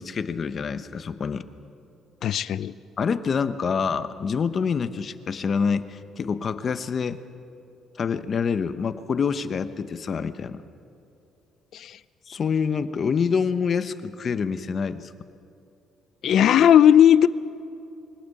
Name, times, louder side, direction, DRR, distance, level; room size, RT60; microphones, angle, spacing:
voice 1, 0.0-1.5 3.0-7.2 8.0-10.6 12.3-15.1, left 6 dB, 40° left, 11 dB, 1.0 m, -26 dB
voice 2, 2.2-2.7 11.7-12.0 16.2-17.3, left 10 dB, 60° left, 15 dB, 0.6 m, -16 dB
24.0 x 18.0 x 8.6 m, 2.7 s
cardioid pair, 130°, 0 cm